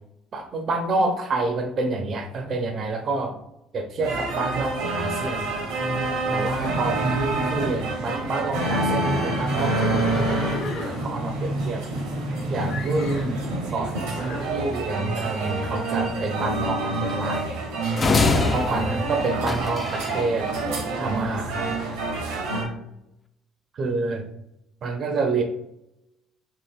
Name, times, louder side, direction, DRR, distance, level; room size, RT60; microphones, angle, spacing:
voice 1, 0.3-3.4 3.7-5.5 6.3-10.2 10.8-11.8 12.5-17.4 18.3-20.5 21.0-21.6 23.7-24.2 24.8-25.4, right 3 dB, 50° right, 5 dB, 0.4 m, -28 dB
sound 1, 4.0-22.6, right 2 dB, 85° right, 0.7 m, -27 dB
Livestock farm animals working animals, 9.2-12.3 12.7-13.4 14.2-14.5, left 2 dB, 70° left, 0.9 m, -35 dB
sound 2, 18.0-20.2, left 4 dB, 30° left, 0.3 m, -24 dB
3.0 x 2.8 x 2.3 m, 0.82 s
hypercardioid pair, 65°, 0 cm